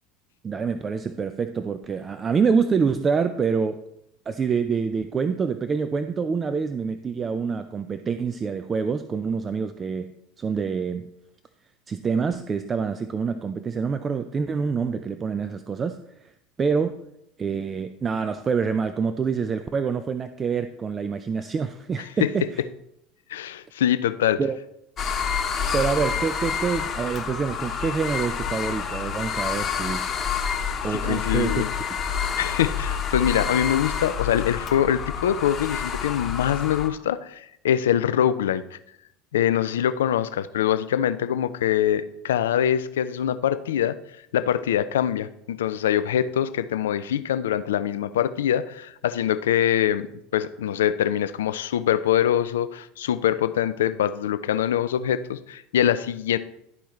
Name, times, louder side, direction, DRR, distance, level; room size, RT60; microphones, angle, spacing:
voice 1, 0.4-3.8 4.3-10.1 10.4-11.1 11.9-16.0 16.6-17.0 17.4-22.6 24.4-24.6 25.7-30.1 30.8-31.6, right 5 dB, 30° right, 10 dB, 0.4 m, -26 dB
voice 2, 23.3-24.4 30.9-31.7 32.4-38.8 39.3-44.0 44.3-56.4, left 10 dB, 80° left, 13 dB, 0.3 m, -24 dB
sound 1, 25.0-36.9, left 7 dB, 35° left, 1.0 m, -28 dB
12.0 x 4.4 x 3.1 m, 0.79 s
hypercardioid pair, 80°, 0 cm